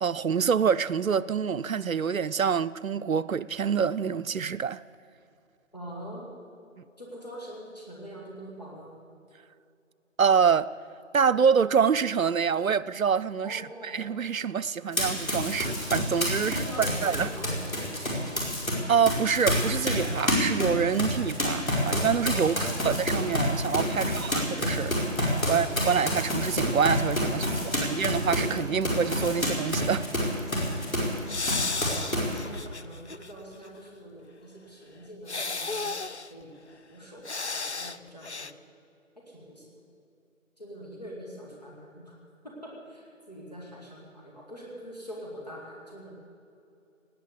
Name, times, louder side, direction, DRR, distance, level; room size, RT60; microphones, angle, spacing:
voice 1, 0.0-4.8 10.2-10.7 11.1-17.3 18.9-25.2 25.5-30.1, right 6 dB, 85° right, 0.6 m, -26 dB
voice 2, 5.7-6.3 7.0-8.9 13.4-14.1 16.3-18.0 22.3-22.9 23.9-24.2 27.3-28.1 31.5-32.1 32.5-36.0 36.3-36.5 36.9-38.5 39.2-39.7 40.6-42.2 42.4-46.2, equal, 30° left, 2.3 m, -44 dB
Run, 14.9-18.7 19.0-31.2 31.4-32.4, left 1 dB, 85° left, 4.9 m, -28 dB
sound 1, 31.3-33.3 33.7-33.8 35.3-36.3 37.3-38.0 38.2-38.5, left 3 dB, 55° left, 0.5 m, -33 dB
18.0 x 8.9 x 8.2 m
figure-of-eight pair, 180°, 40 cm